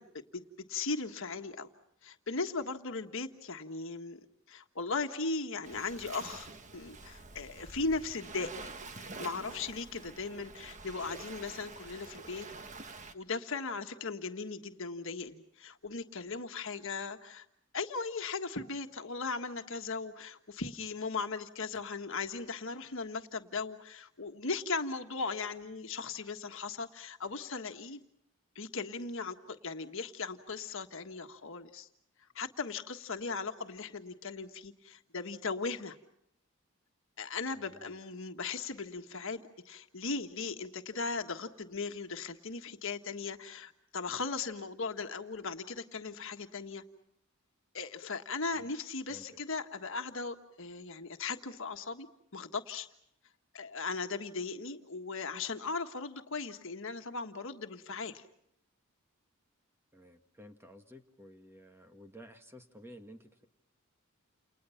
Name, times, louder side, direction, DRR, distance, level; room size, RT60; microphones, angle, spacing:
voice 1, 0.0-1.7 2.0-4.2 4.5-8.5 9.2-12.5 13.1-17.4 17.7-28.0 28.5-31.9 32.3-36.0 37.2-46.8 47.7-52.1 52.3-52.9 53.5-58.2, left 4 dB, 65° left, 6 dB, 1.5 m, -38 dB
Waves surf, 5.6-13.1, right 3 dB, 35° right, 1.4 m, -47 dB
voice 2, 37.5-38.0 48.5-48.7 49.1-49.4 59.9-63.4, equal, 10° right, 6 dB, 1.8 m, -53 dB
29.5 x 29.5 x 5.8 m, 0.75 s
head